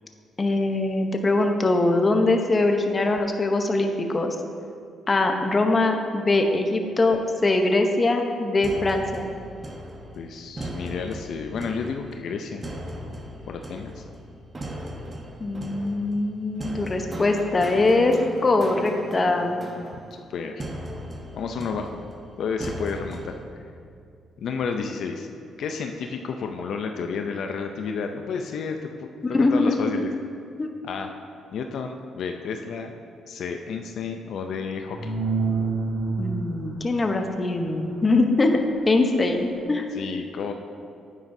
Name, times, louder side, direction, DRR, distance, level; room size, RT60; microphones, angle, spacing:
voice 1, 0.4-4.4 5.1-9.3 15.4-18.2 18.4-19.6 29.3-30.0 30.6-30.7 36.2-38.5 38.9-39.8, left 2 dB, 30° left, 4 dB, 0.8 m, -22 dB
sound 1, 8.6-23.4, right 1 dB, 30° right, 1.0 m, -38 dB
voice 2, 10.2-12.8 13.5-14.0 20.1-20.6 21.3-22.0 22.4-23.6 24.4-25.3 25.6-29.1 29.4-30.1 30.8-31.1 31.5-32.9 33.3-35.1 39.9-40.5, left 5 dB, 70° left, 4 dB, 0.5 m, -31 dB
sound 2, 34.8-36.8 39.5-39.6, right 4 dB, 85° right, 1.7 m, -27 dB
9.3 x 9.2 x 2.7 m, 2.4 s
cardioid pair, 90°, 0 cm